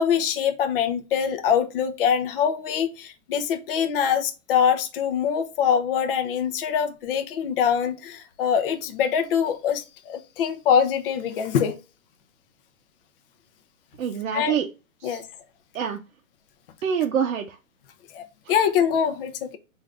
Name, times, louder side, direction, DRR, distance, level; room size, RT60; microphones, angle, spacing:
voice 1, 0.0-11.8 14.3-14.7 15.0-15.3 18.1-19.6, left 7 dB, 40° left, 0.5 m, -24 dB
voice 2, 14.0-14.7 15.0-15.2 15.7-16.0 16.8-17.6 18.5-18.6, right 8 dB, 70° right, 0.6 m, -26 dB
3.6 x 2.6 x 3.2 m
hypercardioid pair, 135°, 42 cm